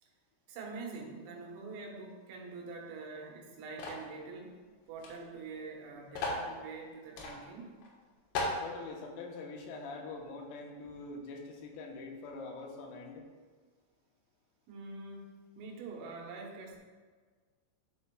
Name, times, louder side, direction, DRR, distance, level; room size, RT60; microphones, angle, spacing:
voice 1, 0.5-4.6 4.9-7.8 14.7-16.8, right 4 dB, 80° right, 0 dB, 3.7 m, -45 dB
sound 1, 3.8-4.1 5.0-5.1 5.4-5.5 6.1-6.5 7.2-7.4 7.8-7.9 8.4-8.6, left 2 dB, 65° left, 3.0 m, -35 dB
voice 2, 8.6-13.3, left 3 dB, 85° left, 1 dB, 3.6 m, -44 dB
10.5 x 7.1 x 2.3 m, 1.5 s
omnidirectional pair, 5.9 m